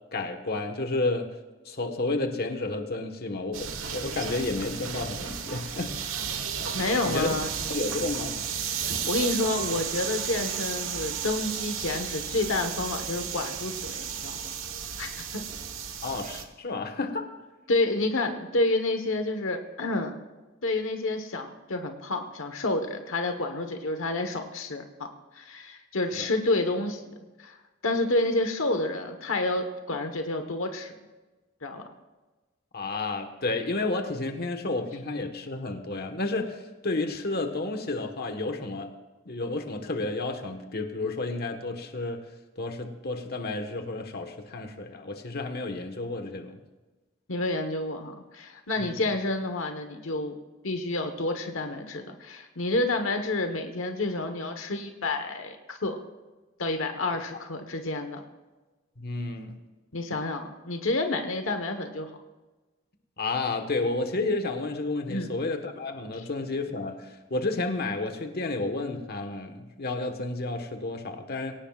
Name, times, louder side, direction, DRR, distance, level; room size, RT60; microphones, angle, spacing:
voice 1, 0.1-1.3 1.6-5.9 7.0-7.3 7.7-8.4 16.0-17.3 26.2-26.3 32.7-38.9 39.2-42.2 42.6-46.6 48.8-48.9 59.0-59.6 63.2-71.6, left 2 dB, 50° left, 5 dB, 1.4 m, -31 dB
sound 1, 3.5-16.4, right 7 dB, 75° right, 1.4 m, -33 dB
voice 2, 6.7-7.5 8.6-14.5 15.0-15.4 17.7-20.2 20.6-25.1 25.3-27.6 27.8-30.9 31.6-31.9 47.3-50.4 50.6-56.0 56.6-58.2 59.9-62.1 65.1-65.3 66.1-66.2, left 2 dB, 75° left, 6 dB, 1.3 m, -29 dB
23.0 x 18.0 x 2.5 m, 1.2 s
head